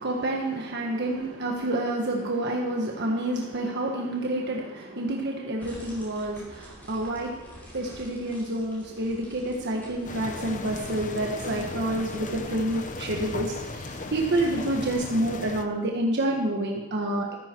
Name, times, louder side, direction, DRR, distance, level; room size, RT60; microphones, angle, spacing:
voice 1, 0.0-17.4, right 1 dB, 55° right, 0 dB, 1.5 m, -28 dB
sound 1, 5.6-14.8, equal, 10° left, 6.1 m, -48 dB
sound 2, 10.0-15.6, left 2 dB, 40° left, 0.9 m, -36 dB
14.5 x 14.5 x 4.6 m, 1.2 s
head